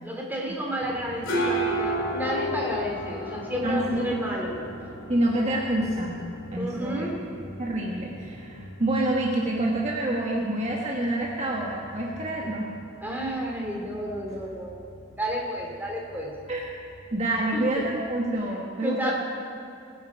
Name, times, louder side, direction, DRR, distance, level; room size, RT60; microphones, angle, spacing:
voice 1, 0.0-4.6 6.6-7.2 13.0-14.8 15.2-16.3 17.5-17.8 18.8-19.1, equal, 10° right, -1 dB, 2.6 m, -31 dB
sound 1, 0.8-18.3, right 1 dB, 85° left, 2.5 m, -36 dB
voice 2, 3.6-4.2 5.1-6.2 6.5-7.1 7.6-12.7 16.5-16.6 17.1-19.1, right 1 dB, 35° right, -2 dB, 1.3 m, -27 dB
20.0 x 9.4 x 4.7 m, 2.7 s
head